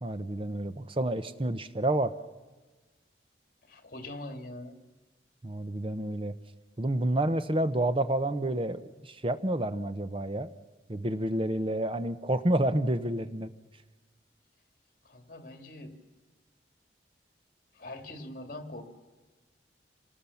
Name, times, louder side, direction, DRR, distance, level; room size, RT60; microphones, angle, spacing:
voice 1, 0.0-2.1 5.4-6.3 6.8-10.5 10.9-13.5, right 1 dB, 30° right, 12 dB, 0.8 m, -29 dB
voice 2, 3.6-4.8 15.0-16.0 17.7-18.8, left 1 dB, 50° left, 7 dB, 2.3 m, -43 dB
26.5 x 19.0 x 7.1 m, 1.3 s
head